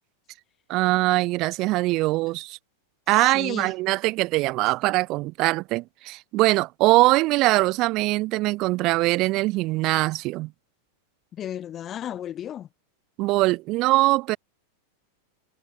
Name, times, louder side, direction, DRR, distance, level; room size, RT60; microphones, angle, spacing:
voice 1, 0.7-2.6 3.1-10.5 13.2-14.4, right 20 dB, 40° right, 1.1 m, -22 dB
voice 2, 3.1-3.7 11.3-12.7, left 10 dB, 30° left, 5.6 m, -34 dB
figure-of-eight pair, 90°, 0 cm